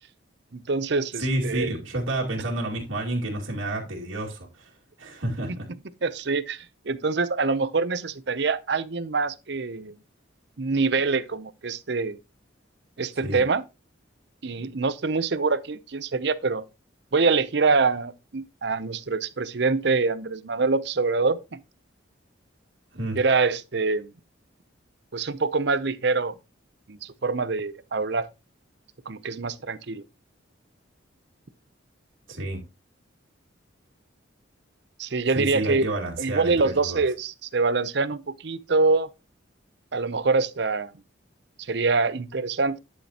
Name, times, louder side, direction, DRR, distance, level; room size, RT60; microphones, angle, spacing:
voice 1, 0.5-1.7 5.5-5.6 6.0-9.9 10.6-12.2 13.0-13.6 14.4-16.6 17.1-21.6 23.2-24.1 25.1-26.3 26.9-28.3 29.1-30.0 35.0-35.9 36.2-39.1 39.9-40.9 41.6-42.8, right 4 dB, 60° right, 0.6 m, -25 dB
voice 2, 1.2-4.7 5.0-5.7 13.2-13.4 22.9-23.2 32.3-32.6 35.3-37.0, right 1 dB, 90° right, 2.4 m, -30 dB
11.5 x 6.5 x 2.9 m
head